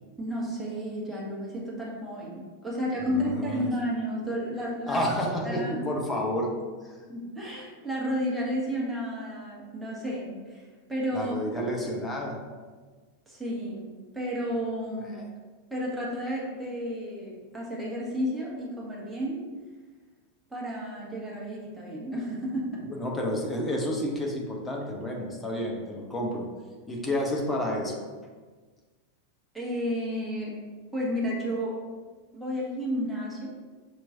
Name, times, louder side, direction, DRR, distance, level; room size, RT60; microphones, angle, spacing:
voice 1, 0.2-5.0 5.4-5.9 7.1-11.3 13.3-15.2 15.7-19.5 20.5-22.9 29.5-30.6 30.9-31.8 32.3-33.5, equal, 5° right, -5 dB, 1.3 m, -32 dB
voice 2, 3.1-3.7 4.9-6.5 6.8-7.0 11.1-12.4 15.1-15.3 22.9-26.5 26.9-28.0, equal, 15° left, -1 dB, 0.8 m, -30 dB
6.2 x 3.0 x 2.6 m, 1.4 s
figure-of-eight pair, 90°, 0 cm